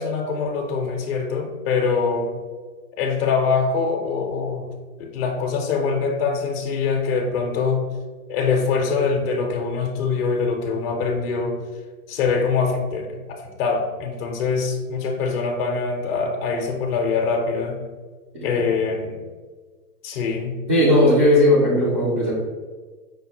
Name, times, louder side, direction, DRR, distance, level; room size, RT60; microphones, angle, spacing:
voice 1, 0.0-2.3 3.0-4.7 5.0-7.9 8.3-11.6 12.1-17.8 18.4-19.2 20.0-20.6, left 5 dB, 45° left, 1 dB, 0.5 m, -23 dB
voice 2, 20.7-22.3, left 1 dB, 25° right, -8 dB, 0.3 m, -17 dB
5.0 x 2.1 x 2.8 m, 1.4 s
hypercardioid pair, 135°, 45 cm